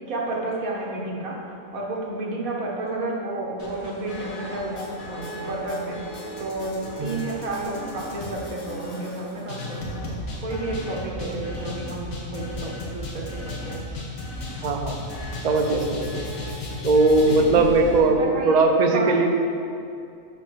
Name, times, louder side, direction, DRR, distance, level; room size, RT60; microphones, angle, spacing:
voice 1, 0.1-1.4 1.7-6.0 6.4-14.0 17.2-17.6 18.2-19.3, right 2 dB, 80° right, -3 dB, 1.6 m, -31 dB
sound 1, 3.6-18.0, left 2 dB, 75° left, 1.6 m, -35 dB
voice 2, 14.6-15.0 15.4-16.2 16.8-19.3, right 3 dB, 50° right, 3 dB, 0.5 m, -19 dB
5.8 x 5.3 x 6.2 m, 2.5 s
omnidirectional pair, 1.5 m